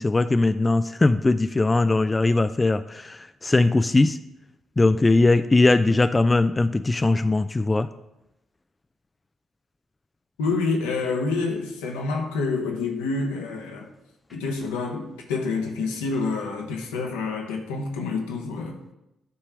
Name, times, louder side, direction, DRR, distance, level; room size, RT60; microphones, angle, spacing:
voice 1, 0.0-4.2 4.8-7.9, left 2 dB, 25° left, 11 dB, 0.3 m, -20 dB
voice 2, 10.4-13.9 14.3-18.8, left 4 dB, 80° left, 0 dB, 1.0 m, -27 dB
9.4 x 3.3 x 6.1 m, 0.92 s
hypercardioid pair, 45°, 0 cm